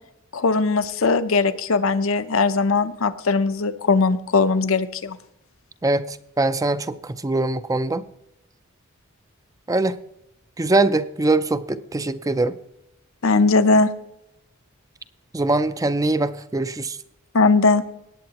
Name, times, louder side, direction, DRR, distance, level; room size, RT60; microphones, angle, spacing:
voice 1, 0.3-5.2 13.2-13.9 17.3-17.8, left 3 dB, 70° left, 0.7 m, -19 dB
voice 2, 5.8-8.0 9.7-10.0 10.6-12.5 15.3-17.0, right 2 dB, 15° right, 0.4 m, -22 dB
18.0 x 8.7 x 2.9 m
head